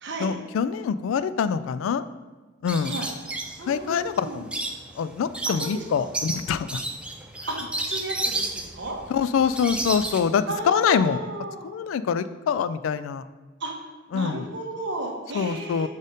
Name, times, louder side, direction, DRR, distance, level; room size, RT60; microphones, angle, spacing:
voice 1, 0.2-2.0 2.6-2.9 3.7-4.5 5.0-6.8 9.1-11.2 11.6-13.3 14.1-14.5 15.3-15.9, left 7 dB, 75° left, 14 dB, 0.3 m, -25 dB
sound 1, 2.7-10.2, right 2 dB, 5° right, 0.4 m, -32 dB
voice 2, 3.6-4.4 5.7-6.1 7.5-9.0 10.5-11.7 13.6-13.7 14.1-15.9, right 2 dB, 60° right, 0 dB, 1.1 m, -33 dB
5.0 x 4.2 x 5.2 m, 1.3 s
head